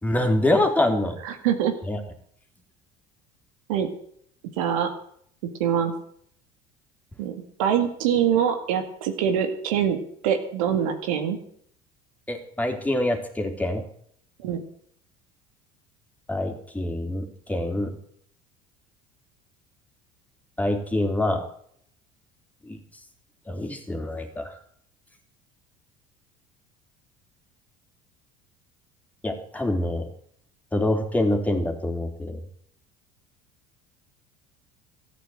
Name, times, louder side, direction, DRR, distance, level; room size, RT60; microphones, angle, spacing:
voice 1, 0.0-1.2 1.9-2.0 12.3-13.8 16.3-18.0 20.6-21.4 22.7-22.8 23.5-24.5 29.2-30.1 30.7-32.4, left 1 dB, 10° left, 3 dB, 3.4 m, -25 dB
voice 2, 1.2-1.7 3.7-3.9 4.6-4.9 5.6-5.9 7.2-11.4 14.4-14.6, right 8 dB, 80° right, 6 dB, 2.1 m, -24 dB
13.5 x 9.7 x 7.9 m, 0.65 s
hypercardioid pair, 80°, 18 cm